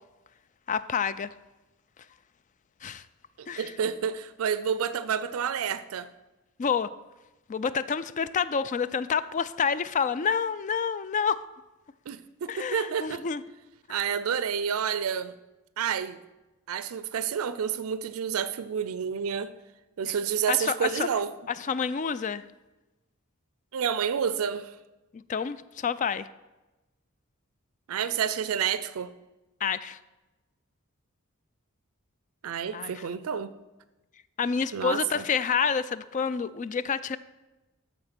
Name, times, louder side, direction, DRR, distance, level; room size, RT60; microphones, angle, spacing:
voice 1, 0.7-1.3 2.8-3.0 3.5-3.7 6.6-6.9 7.5-11.4 12.5-13.4 13.9-14.0 20.0-20.1 20.5-21.1 21.7-22.4 25.1-26.3 29.6-30.0 32.7-33.0 34.4-37.2, left 6 dB, 35° left, 0.3 m, -28 dB
voice 2, 3.4-6.1 12.1-13.2 13.9-15.3 15.8-16.2 16.7-19.5 20.0-21.3 23.7-24.7 27.9-29.1 32.4-33.5 34.7-35.2, right 7 dB, 80° right, 0.4 m, -29 dB
13.0 x 4.4 x 5.8 m
head